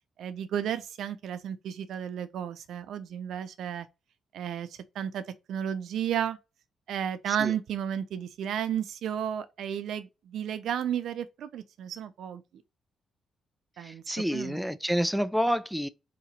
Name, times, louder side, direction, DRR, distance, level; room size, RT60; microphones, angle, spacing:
voice 1, 0.2-3.9 4.3-4.7 4.9-5.2 5.5-6.4 6.9-12.4 13.8-14.6, right 9 dB, 75° right, 0.6 m, -33 dB
voice 2, 13.8-15.9, equal, ahead, 0.4 m, -29 dB
3.8 x 2.9 x 4.4 m
cardioid pair, 130°, 0 cm